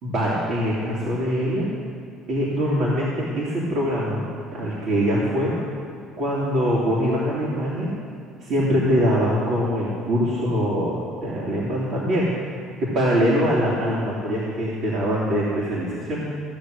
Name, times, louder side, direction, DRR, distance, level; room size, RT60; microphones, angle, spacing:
voice 1, 0.0-1.7 2.3-4.3 4.5-5.5 6.2-7.9 8.4-12.3 12.9-16.2, equal, 55° right, -6 dB, 3.0 m, -23 dB
16.0 x 6.6 x 9.9 m, 2.3 s
cardioid pair, 155°, 0 cm